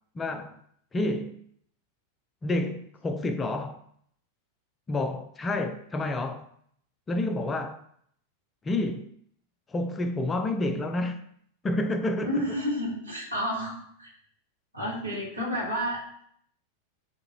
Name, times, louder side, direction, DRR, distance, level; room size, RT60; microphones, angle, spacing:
voice 1, 0.2-0.6 0.9-1.4 2.4-3.8 4.9-6.5 7.1-7.8 8.6-9.1 9.7-11.2 11.6-12.4 15.4-15.6, left 2 dB, 15° left, 0.5 m, -29 dB
voice 2, 12.2-13.7 14.0-14.1 14.7-16.2, equal, 85° right, 2.2 m, -30 dB
9.6 x 3.7 x 3.1 m
figure-of-eight pair, 90°, 0 cm